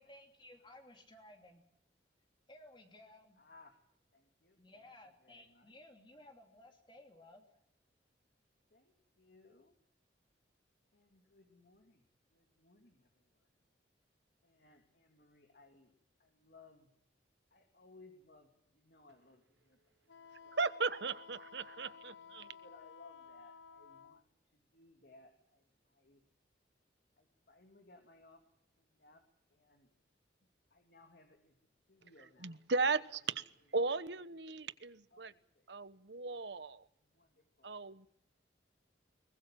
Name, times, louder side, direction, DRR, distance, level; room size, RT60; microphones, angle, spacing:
voice 1, 0.0-1.6 2.5-3.4 4.6-7.4, left 1 dB, 25° left, 3 dB, 2.9 m, -58 dB
voice 2, 3.4-3.8 4.1-4.9 5.2-5.7 8.7-9.7 10.9-12.0 12.3-13.5 14.4-16.9 17.5-20.6 21.8-26.2 27.2-28.4 28.8-29.2 29.5-29.9 30.7-31.6 31.9-32.6 33.3-33.4 34.0-34.1 34.5-34.7 35.1-35.8 37.0-37.7, left 3 dB, 55° left, 4 dB, 2.8 m, -63 dB
Wind instrument woodwind instrument, 20.1-24.2, left 7 dB, 90° left, 1.0 m, -55 dB
voice 3, 20.5-22.5 32.4-33.4 33.7-35.3 35.7-36.9 37.6-38.1, right 4 dB, 70° right, 15 dB, 1.1 m, -36 dB
23.5 x 20.5 x 7.5 m, 0.70 s
head